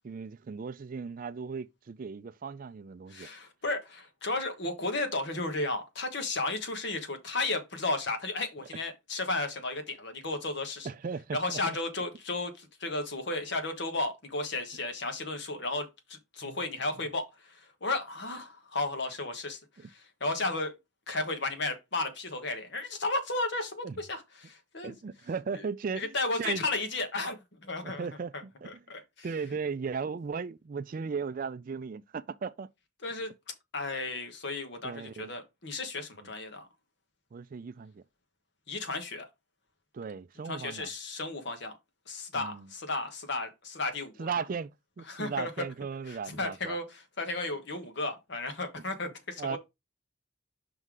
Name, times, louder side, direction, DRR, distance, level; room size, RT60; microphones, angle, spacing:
voice 1, 0.0-3.3 10.8-11.8 16.4-16.6 19.8-19.9 23.8-24.0 24.8-26.6 27.8-28.8 29.2-32.7 34.8-35.3 37.3-38.0 39.9-40.9 42.3-42.7 44.2-46.8 49.4-49.6, right 5 dB, 40° right, 0.3 m, -37 dB
voice 2, 3.1-10.9 11.3-20.8 21.1-24.9 25.5-25.6 26.0-28.1 28.6-29.3 33.0-33.3 33.7-36.7 38.7-39.3 40.5-41.7 42.1-44.4 45.1-45.5 46.1-49.6, left 2 dB, 55° left, 1.3 m, -34 dB
5.4 x 3.9 x 4.7 m
head